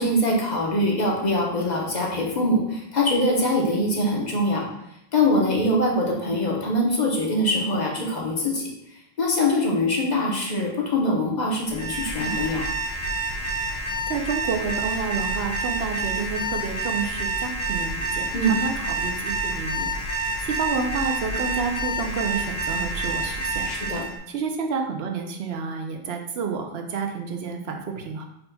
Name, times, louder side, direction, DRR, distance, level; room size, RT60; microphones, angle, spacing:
voice 1, 0.0-4.7 5.1-8.7 9.2-12.7 18.3-18.6 23.6-24.1, left 1 dB, 45° left, -2 dB, 1.0 m, -23 dB
Alarm, 11.6-24.1, right 2 dB, 75° left, 1.6 m, -28 dB
voice 2, 14.1-19.9 20.4-23.7 24.3-28.2, right 5 dB, 75° right, 4 dB, 0.9 m, -29 dB
5.5 x 4.1 x 2.2 m, 0.80 s
omnidirectional pair, 1.1 m